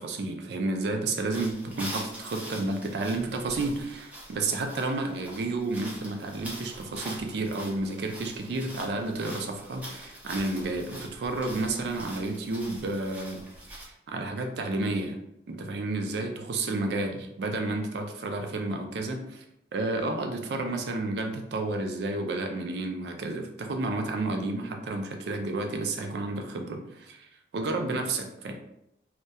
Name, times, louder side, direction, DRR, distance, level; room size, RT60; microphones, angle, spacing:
voice 1, 0.0-13.4 13.7-15.2 15.5-19.4 19.7-27.3 27.5-28.5, right 2 dB, 75° right, 4 dB, 0.4 m, -31 dB
sound 1, 1.3-13.8, right 1 dB, 10° right, 0.4 m, -43 dB
2.7 x 2.1 x 2.2 m, 0.81 s
head